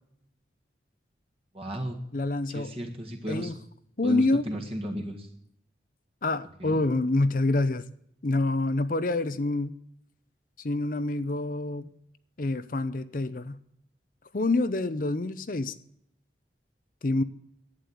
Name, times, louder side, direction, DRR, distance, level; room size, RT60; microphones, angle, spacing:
voice 1, 1.5-2.0 2.5-3.5 4.0-5.3 6.6-6.8, right 1 dB, 30° right, 2 dB, 1.6 m, -34 dB
voice 2, 2.1-2.7 3.3-3.6 4.0-4.4 6.2-7.9 8.2-9.8 10.6-11.9 12.4-13.6 14.3-15.7 17.0-17.2, left 2 dB, 45° left, 13 dB, 0.7 m, -27 dB
11.5 x 8.9 x 8.2 m, 0.71 s
head